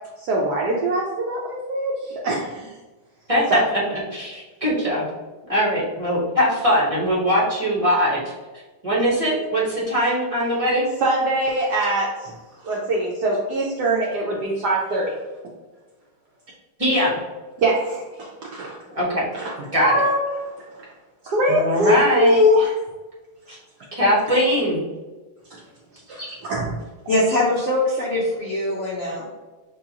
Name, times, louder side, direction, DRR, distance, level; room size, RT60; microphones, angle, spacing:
voice 1, 0.2-2.7 3.5-3.6 11.0-12.4 12.6-15.1 17.6-18.8 19.3-19.5 19.8-20.9 21.3-22.8 25.5-25.6 26.1-26.8, equal, 75° right, -3 dB, 0.9 m, -22 dB
voice 2, 3.3-5.1 5.5-8.2 8.8-10.9 16.8-17.2 18.9-19.2 19.7-20.0 21.5-22.4 23.5-23.6 24.0-24.8, equal, 35° right, -7 dB, 0.5 m, -21 dB
voice 3, 27.1-29.2, left 1 dB, 75° left, -6 dB, 0.6 m, -22 dB
6.7 x 2.4 x 2.8 m, 1.2 s
omnidirectional pair, 2.4 m